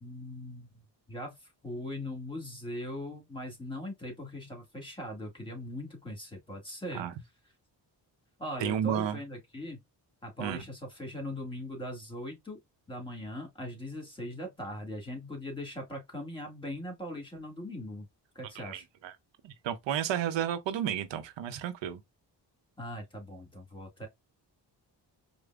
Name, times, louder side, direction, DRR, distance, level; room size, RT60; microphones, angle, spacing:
voice 1, 0.0-0.7 1.1-1.4 1.6-7.1 8.4-9.8 10.2-12.6 12.9-18.1 18.4-18.9 22.8-24.1, left 1 dB, 10° left, 1.8 m, -40 dB
voice 2, 8.6-9.2 10.4-10.6 18.6-19.1 19.4-22.0, right 9 dB, 85° right, 0.6 m, -32 dB
4.8 x 2.0 x 2.3 m
cardioid pair, 75°, 43 cm